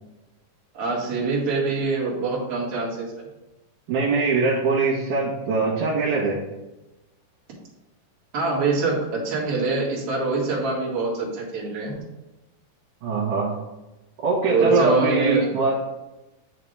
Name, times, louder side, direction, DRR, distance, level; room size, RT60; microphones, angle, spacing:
voice 1, 0.7-3.1 8.3-11.9 14.5-15.4, right 3 dB, 45° right, -5 dB, 2.6 m, -24 dB
voice 2, 3.9-6.4 13.0-13.6 14.2-15.7, right 3 dB, 65° right, -6 dB, 2.4 m, -22 dB
10.5 x 3.8 x 3.3 m, 1.0 s
omnidirectional pair, 4.3 m